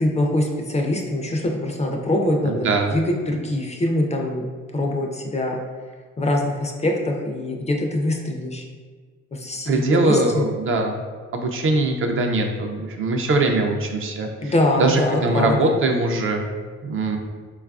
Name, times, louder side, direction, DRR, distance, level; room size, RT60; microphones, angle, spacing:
voice 1, 0.0-4.5 4.7-5.6 6.2-8.6 9.3-10.4 14.4-15.6, left 1 dB, 25° left, 1 dB, 0.4 m, -23 dB
voice 2, 2.5-2.9 9.6-11.0 11.3-16.5 16.8-17.2, right 2 dB, 45° right, 3 dB, 0.4 m, -22 dB
3.7 x 2.3 x 2.3 m, 1.5 s
cardioid pair, 90°, 30 cm